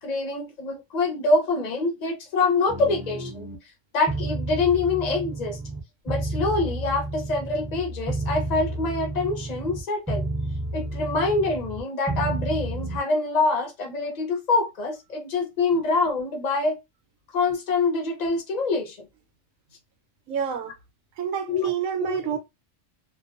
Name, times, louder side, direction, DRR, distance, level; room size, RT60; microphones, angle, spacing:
voice 1, 0.0-3.5 3.9-5.6 6.0-10.3 10.7-16.8 17.3-19.1 21.5-21.7 22.0-22.4, left 3 dB, 40° left, 0.7 m, -25 dB
sound 1, 2.7-3.6 4.1-5.8 6.1-9.8 10.1-11.8 12.1-13.0, right 2 dB, ahead, 0.6 m, -31 dB
voice 2, 20.3-20.7 21.2-22.4, right 8 dB, 80° right, 1.0 m, -28 dB
2.5 x 2.2 x 2.4 m
omnidirectional pair, 1.4 m